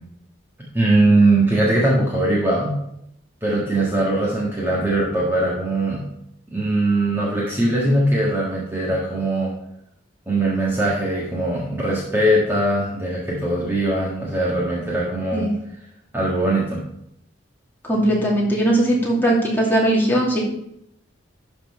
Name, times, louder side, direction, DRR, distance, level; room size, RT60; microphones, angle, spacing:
voice 1, 0.7-2.8 3.4-6.0 6.5-9.5 10.3-15.5 16.1-16.8, right 1 dB, 10° right, -5 dB, 1.6 m, -20 dB
voice 2, 17.8-20.4, right 1 dB, 10° left, -4 dB, 2.4 m, -19 dB
12.0 x 4.3 x 5.4 m, 0.76 s
head